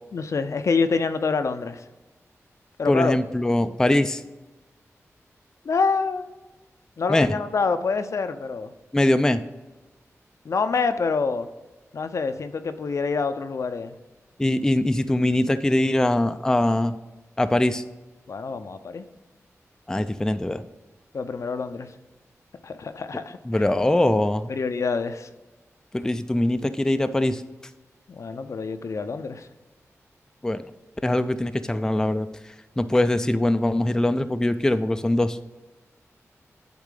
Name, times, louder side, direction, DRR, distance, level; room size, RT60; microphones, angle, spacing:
voice 1, 0.1-1.8 2.8-3.2 5.6-6.2 7.0-8.7 10.4-11.5 11.9-14.0 18.3-19.0 21.1-21.9 22.6-23.7 24.5-25.3 28.1-29.5, left 4 dB, 70° left, 9 dB, 0.5 m, -26 dB
voice 2, 2.9-4.2 7.1-7.3 8.9-9.4 14.4-16.9 17.4-17.8 19.9-20.6 23.5-24.5 25.9-27.4 30.4-30.6 31.0-32.3 32.8-35.4, left 1 dB, 10° left, 10 dB, 0.3 m, -22 dB
9.5 x 3.7 x 3.7 m, 1.1 s
wide cardioid pair, 80°, 5 cm